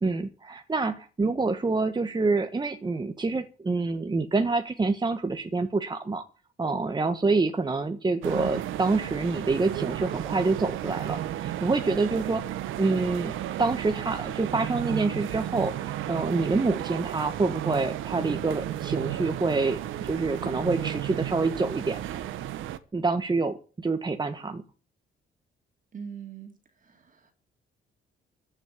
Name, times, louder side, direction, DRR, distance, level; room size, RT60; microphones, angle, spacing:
voice 1, 0.0-6.2 6.6-12.4 12.8-22.2 22.9-24.6, right 3 dB, 20° right, 7 dB, 1.3 m, -27 dB
sound 1, 8.2-22.8, right 12 dB, 90° right, 1.1 m, -33 dB
voice 2, 11.8-12.3 25.9-26.5 26.8-27.3, right 6 dB, 40° right, 4 dB, 2.7 m, -42 dB
14.5 x 6.4 x 9.9 m, 0.37 s
cardioid pair, 90°, 20 cm